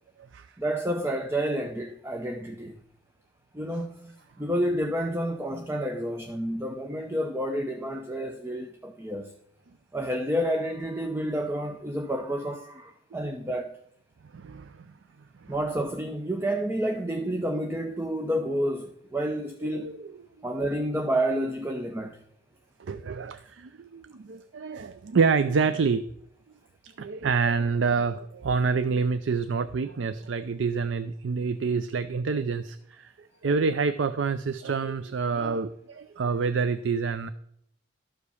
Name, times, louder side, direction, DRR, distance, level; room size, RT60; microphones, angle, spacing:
voice 1, 0.6-2.8 3.5-9.3 9.9-13.8 15.5-19.9 20.4-22.2, equal, 15° right, 0.6 m, -29 dB
voice 2, 14.3-14.9 19.7-20.2 22.8-26.1 26.8-37.3, right 5 dB, 75° right, 0.5 m, -27 dB
12.5 x 4.9 x 6.9 m
head